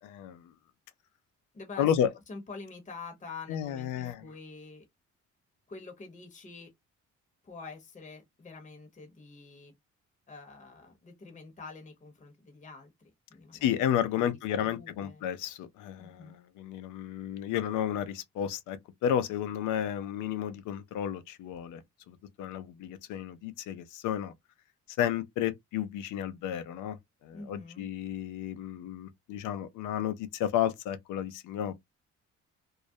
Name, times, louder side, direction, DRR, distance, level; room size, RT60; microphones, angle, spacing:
voice 1, 0.0-0.4 1.8-2.1 3.5-4.2 13.6-21.8 22.1-24.3 25.0-27.0 27.2-31.8, left 10 dB, 90° left, 0.5 m, -32 dB
voice 2, 1.5-4.8 5.7-6.7 7.4-9.7 10.3-12.9 13.3-13.7 14.1-15.3 16.0-16.4 27.3-27.9, left 4 dB, 25° left, 0.8 m, -46 dB
2.3 x 2.0 x 2.6 m
cardioid pair, 90°, 30 cm